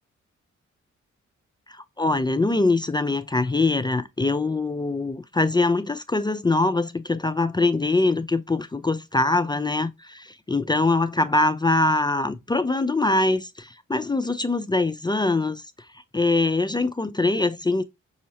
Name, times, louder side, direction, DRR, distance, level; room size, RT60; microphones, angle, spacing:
voice 1, 1.7-15.6 16.1-17.8, left 2 dB, 15° left, 0.3 m, -23 dB
5.5 x 2.0 x 2.7 m
cardioid pair, 60°, 29 cm